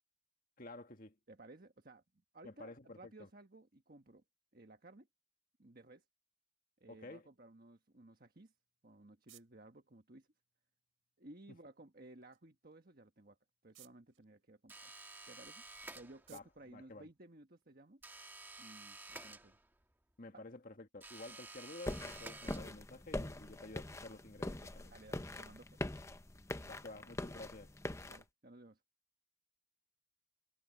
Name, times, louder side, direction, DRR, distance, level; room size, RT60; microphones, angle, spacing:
voice 1, 0.6-1.1 2.4-3.3 6.9-7.3 16.3-16.4 16.7-17.1 20.2-24.9 26.6-27.7, left 2 dB, 45° left, 1.7 m, -51 dB
voice 2, 1.3-2.0 2.3-4.2 4.5-5.1 5.6-6.0 6.8-8.5 8.8-10.3 11.2-13.4 13.6-14.9 15.3-15.6 15.9-18.0 18.6-19.6 20.3-20.4 24.8-25.8 28.0-28.8, right 2 dB, 45° right, 1.4 m, -57 dB
sound 1, 8.5-17.9, right 15 dB, 85° right, 4.1 m, -69 dB
sound 2, 14.7-16.5 18.0-19.9 21.0-23.0, right 2 dB, 10° right, 1.3 m, -52 dB
sound 3, 21.9-28.2, left 1 dB, 15° left, 0.6 m, -43 dB
head